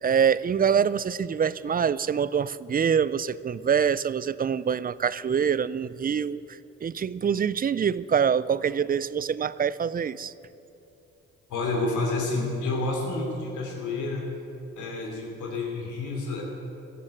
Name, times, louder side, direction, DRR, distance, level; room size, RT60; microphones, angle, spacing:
voice 1, 0.0-6.4 6.8-10.3, right 7 dB, 30° right, 18 dB, 0.4 m, -25 dB
voice 2, 11.5-14.3 14.7-16.4, left 3 dB, 75° left, 0 dB, 3.0 m, -29 dB
15.0 x 7.6 x 7.6 m, 2.8 s
supercardioid pair, 55°, 30 cm